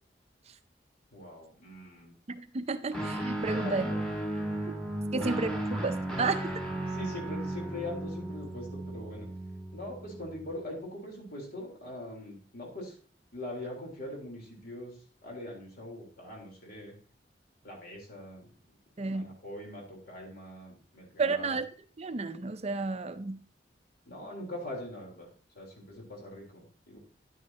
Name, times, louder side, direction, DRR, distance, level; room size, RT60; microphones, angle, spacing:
voice 1, 1.1-2.1 3.5-4.0 5.1-5.3 6.9-9.3 9.7-13.0 13.3-14.9 15.2-16.9 17.6-18.5 19.1-21.5 24.1-27.0, left 1 dB, 60° left, 3.8 m, -42 dB
voice 2, 2.3-3.8 5.1-5.5 5.8-6.5 19.0-19.4 21.2-21.7 22.0-23.4, right 4 dB, 40° right, 0.6 m, -31 dB
Guitar, 2.9-10.6, right 1 dB, 5° left, 1.7 m, -35 dB
10.5 x 9.4 x 2.9 m
head